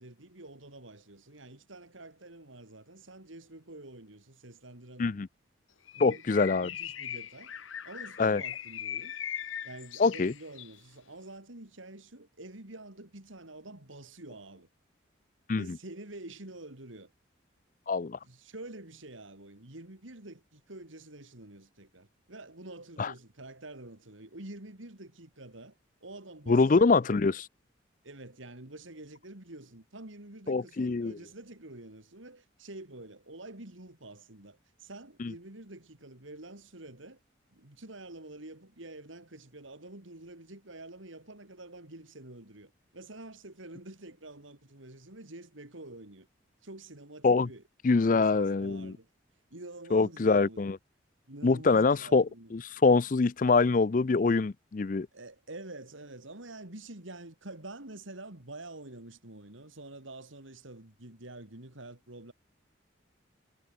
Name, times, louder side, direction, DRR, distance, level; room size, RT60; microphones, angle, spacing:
voice 1, 0.0-5.2 5.9-7.5 7.8-9.2 9.6-14.7 15.5-17.1 18.2-25.8 26.0-27.1 28.0-37.2 37.5-46.3 46.6-47.6 48.0-49.1 49.5-50.7 51.3-52.5 55.1-62.3, right 2 dB, 80° right, 3.5 m, -47 dB
Bird, 5.9-10.8, left 9 dB, 85° left, 1.2 m, -40 dB
voice 2, 6.0-6.7 8.2-8.4 10.0-10.3 15.5-15.8 17.9-18.2 23.0-23.1 26.5-27.4 30.5-31.1 35.2-35.3 47.2-47.5 47.8-48.9 49.9-50.8 51.4-55.1, left 4 dB, 40° left, 0.4 m, -24 dB
head